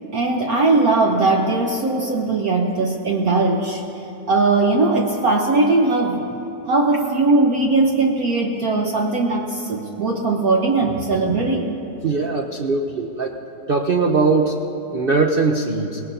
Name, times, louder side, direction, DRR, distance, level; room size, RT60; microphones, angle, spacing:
voice 1, 0.1-3.8 4.3-6.2 6.7-11.7, right 3 dB, 60° right, 0 dB, 1.2 m, -19 dB
voice 2, 12.0-13.3 13.7-14.6 14.9-16.0, right 4 dB, 75° right, 2 dB, 0.5 m, -20 dB
24.0 x 19.0 x 2.7 m, 3.0 s
omnidirectional pair, 2.0 m